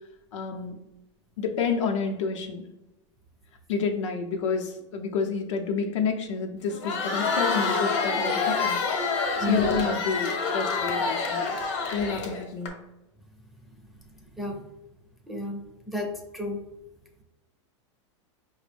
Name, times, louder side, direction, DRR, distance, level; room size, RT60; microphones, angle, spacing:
voice 1, 0.3-0.8 1.4-2.7 3.7-8.8 9.4-11.6 11.9-12.7, left 5 dB, 85° left, 2 dB, 0.7 m, -29 dB
Crowd, 6.7-12.7, left 4 dB, 70° left, 0.9 m, -27 dB
voice 2, 9.4-9.8 14.4-14.5 15.3-15.6 15.9-16.6, left 1 dB, ahead, 1 dB, 0.6 m, -31 dB
5.0 x 2.1 x 3.3 m, 0.95 s
supercardioid pair, 125°, 15 cm